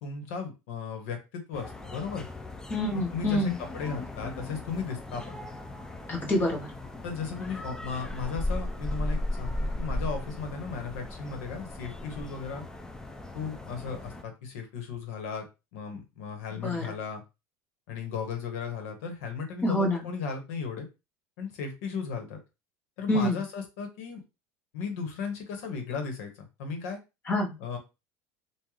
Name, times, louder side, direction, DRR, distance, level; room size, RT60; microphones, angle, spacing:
voice 1, 0.0-2.3 3.1-5.3 7.0-12.6 13.3-15.4 15.7-17.2 17.9-20.9 21.4-22.4 23.0-24.2 24.7-26.3 26.6-27.0 27.6-27.8, left 5 dB, 80° left, 5 dB, 1.3 m, -35 dB
sound 1, 1.5-14.2, left 1 dB, 10° left, 0.4 m, -37 dB
voice 2, 2.7-3.6 6.1-6.7 16.5-16.9 19.6-20.0 23.1-23.4 27.3-27.5, left 1 dB, 25° left, 0 dB, 1.3 m, -27 dB
3.7 x 2.5 x 3.2 m, 0.27 s
cardioid pair, 140°, 8 cm